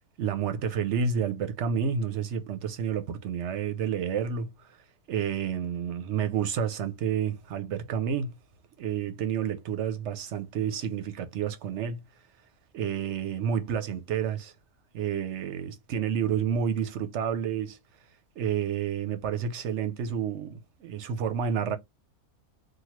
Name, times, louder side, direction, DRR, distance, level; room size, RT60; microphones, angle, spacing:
voice 1, 0.2-4.7 5.1-8.3 8.8-12.0 12.7-14.5 14.9-17.8 18.4-21.8, right 7 dB, 65° right, 0.8 m, -30 dB
3.0 x 2.2 x 2.9 m
omnidirectional pair, 1.5 m